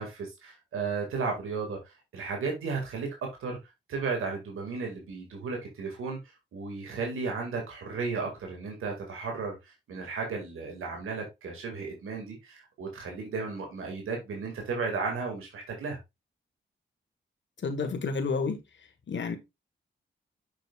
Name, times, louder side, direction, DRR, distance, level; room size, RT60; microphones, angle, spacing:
voice 1, 0.0-3.1 3.4-3.6 3.9-6.2 6.5-16.0, right 4 dB, 85° right, 2.0 m, -34 dB
voice 2, 17.6-18.6 19.1-19.4, left 4 dB, 60° left, 1.5 m, -30 dB
6.5 x 6.2 x 2.4 m
supercardioid pair, 45°, 21 cm